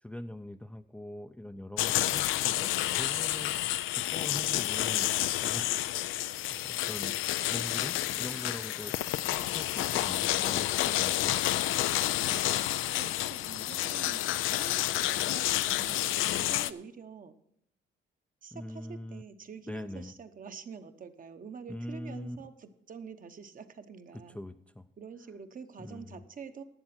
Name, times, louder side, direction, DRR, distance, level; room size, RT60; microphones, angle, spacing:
voice 1, 0.0-2.7 3.0-3.5 3.9-5.1 5.4-5.7 6.3-9.0 9.3-11.4 18.5-19.2 19.7-20.1 21.7-22.4 24.3-24.9 25.8-26.2, left 1 dB, 5° left, 8 dB, 0.5 m, -42 dB
sound 1, 1.8-16.7, left 14 dB, 85° left, 0.4 m, -30 dB
voice 2, 12.3-17.3 18.4-24.4 25.0-26.6, right 6 dB, 45° right, 8 dB, 1.0 m, -47 dB
12.0 x 7.6 x 5.9 m, 0.73 s
cardioid pair, 90°, 20 cm